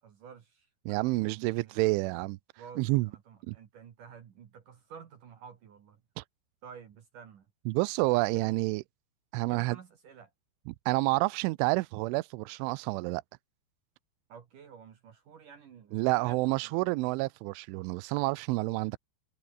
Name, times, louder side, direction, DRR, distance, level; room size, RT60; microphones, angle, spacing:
voice 1, 0.0-2.3 2.6-6.0 6.6-7.5 8.1-8.5 9.5-10.3 14.3-16.8, right 7 dB, 55° right, 2.9 m, -51 dB
voice 2, 0.9-2.4 2.8-3.1 3.5-3.6 6.2-6.3 7.7-8.8 9.3-9.8 10.7-13.2 15.9-19.0, right 23 dB, 85° right, 3.1 m, -29 dB
omnidirectional pair, 5.5 m